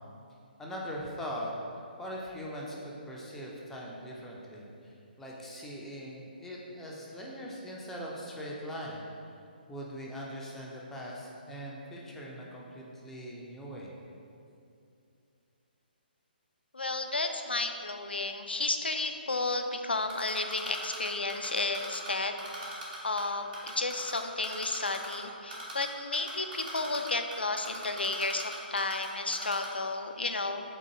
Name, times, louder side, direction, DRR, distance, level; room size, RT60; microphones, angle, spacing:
voice 1, 0.6-1.5 2.0-9.0 9.7-14.0, equal, 5° left, -4 dB, 0.5 m, -41 dB
voice 2, 16.7-22.4 23.0-30.6, left 3 dB, 85° left, 6 dB, 0.4 m, -32 dB
Typing, 20.1-22.1 22.4-23.2 23.5-25.1 25.5-25.9 26.1-29.1 29.3-29.7, right 2 dB, 55° right, 1.3 m, -41 dB
3.7 x 3.6 x 3.9 m, 2.5 s
figure-of-eight pair, 135°, 5 cm